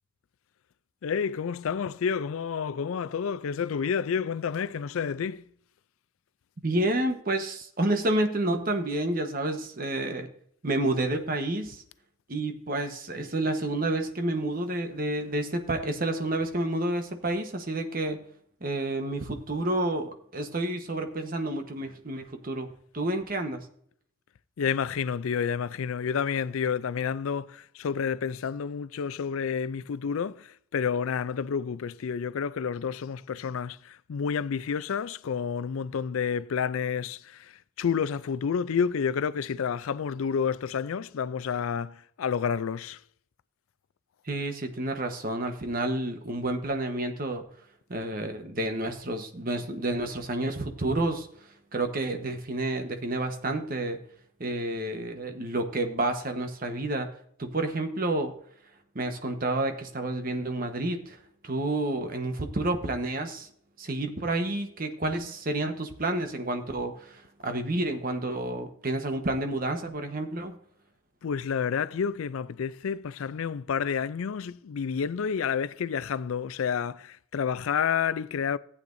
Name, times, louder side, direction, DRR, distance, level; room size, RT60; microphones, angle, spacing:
voice 1, 1.0-5.5 24.6-43.0 71.2-78.6, left 6 dB, 80° left, 0.4 m, -30 dB
voice 2, 6.6-10.3 10.6-11.8 12.3-18.2 18.6-22.7 22.9-23.7 44.3-47.4 47.9-51.3 51.7-54.0 54.4-57.1 57.4-58.3 58.9-61.2 61.4-63.5 63.8-70.6, right 2 dB, 45° right, 1.1 m, -29 dB
14.5 x 8.5 x 2.6 m
head